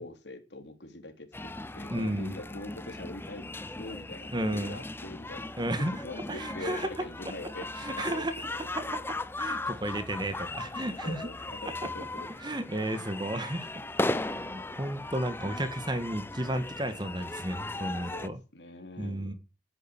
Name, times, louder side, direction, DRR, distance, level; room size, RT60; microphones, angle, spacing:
voice 1, 0.0-5.5 5.8-7.7 8.0-8.3 10.7-12.3 14.7-14.8 17.9-19.3, left 2 dB, 70° left, 6 dB, 3.6 m, -43 dB
sound 1, 1.3-18.3, left 2 dB, 10° left, 0.7 m, -37 dB
voice 2, 1.9-2.4 4.3-4.8 5.6-6.9 7.8-8.3 8.7-8.8 9.4-11.3 12.4-13.7 14.1-18.4 19.0-19.3, right 1 dB, 25° right, 10 dB, 1.8 m, -33 dB
12.0 x 10.0 x 9.1 m, 0.33 s
head